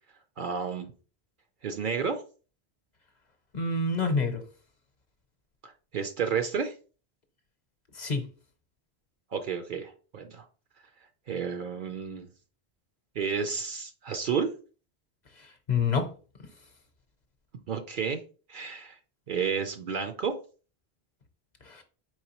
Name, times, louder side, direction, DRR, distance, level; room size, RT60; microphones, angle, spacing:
voice 1, 0.4-0.9 1.6-2.2 5.6-6.7 9.3-10.4 11.3-12.3 13.2-14.5 17.7-18.2 18.5-19.0 19.3-20.3, right 6 dB, 60° right, 0.6 m, -31 dB
voice 2, 3.5-4.4 7.9-8.3 15.4-16.1 21.6-21.8, left 4 dB, 45° left, 0.8 m, -28 dB
4.7 x 3.4 x 2.9 m
omnidirectional pair, 1.1 m